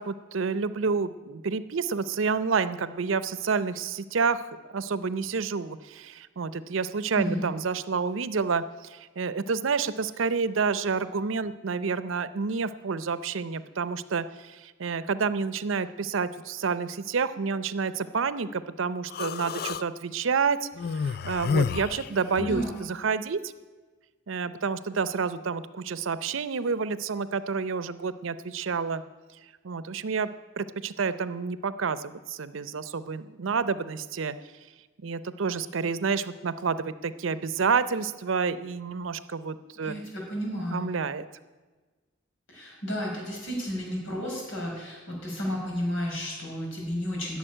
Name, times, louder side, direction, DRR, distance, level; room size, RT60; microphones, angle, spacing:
voice 1, 0.0-23.5 24.3-29.0 29.6-30.3 30.6-34.4 35.0-40.0 40.7-41.3, right 5 dB, 85° right, 14 dB, 0.6 m, -29 dB
voice 2, 7.1-7.5 22.4-22.8 39.8-40.9 42.5-47.4, equal, 85° left, -1 dB, 5.5 m, -32 dB
Human voice, 19.1-19.8 20.8-22.7, left 5 dB, 50° left, 0.3 m, -30 dB
12.5 x 7.0 x 10.0 m, 1.3 s
head